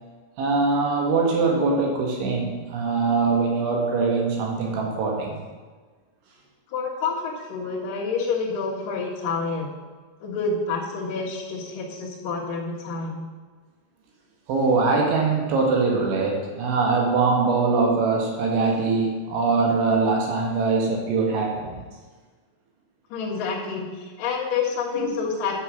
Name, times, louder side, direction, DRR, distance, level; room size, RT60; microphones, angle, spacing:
voice 1, 0.4-5.4 14.5-21.8 25.0-25.2, right 4 dB, 70° right, 0 dB, 3.7 m, -22 dB
voice 2, 6.7-9.7 10.2-13.2 23.1-25.6, left 4 dB, 60° left, -7 dB, 2.5 m, -28 dB
10.5 x 6.6 x 6.4 m, 1.4 s
omnidirectional pair, 6.0 m